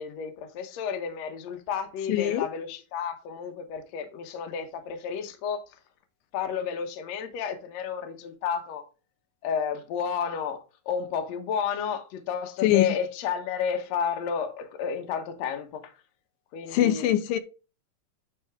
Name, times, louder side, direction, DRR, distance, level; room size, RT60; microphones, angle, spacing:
voice 1, 0.0-5.6 6.3-8.8 9.4-15.9 16.5-17.1, left 7 dB, 65° left, 2.0 m, -31 dB
voice 2, 2.1-2.5 12.6-12.9 16.7-17.4, left 12 dB, 85° left, 2.4 m, -22 dB
10.5 x 4.2 x 3.5 m
omnidirectional pair, 4.0 m